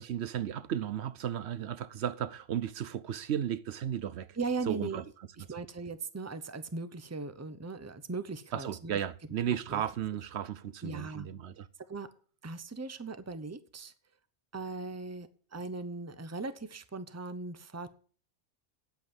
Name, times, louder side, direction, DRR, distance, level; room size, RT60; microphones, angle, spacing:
voice 1, 0.0-4.4 4.7-5.0 5.4-5.5 8.5-11.7, right 10 dB, 65° right, 1.0 m, -34 dB
voice 2, 4.4-5.0 5.4-9.0 9.7-9.8 10.8-11.3 11.9-12.1 12.4-13.9 14.5-17.9, right 4 dB, 15° right, 0.7 m, -38 dB
9.3 x 8.3 x 7.8 m
omnidirectional pair, 1.2 m